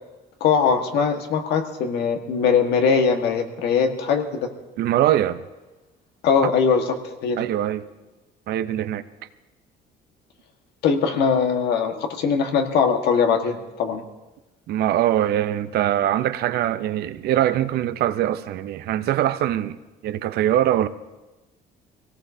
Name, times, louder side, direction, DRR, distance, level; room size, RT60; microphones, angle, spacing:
voice 1, 0.4-4.3 6.2-6.8 7.2-7.4 10.8-14.0, left 6 dB, 80° left, 1.5 m, -21 dB
voice 2, 4.8-5.4 7.4-7.9 8.5-9.0 14.7-19.8 20.0-20.9, right 12 dB, 70° right, 0.7 m, -22 dB
23.5 x 17.5 x 2.7 m
cardioid pair, 110°, 17 cm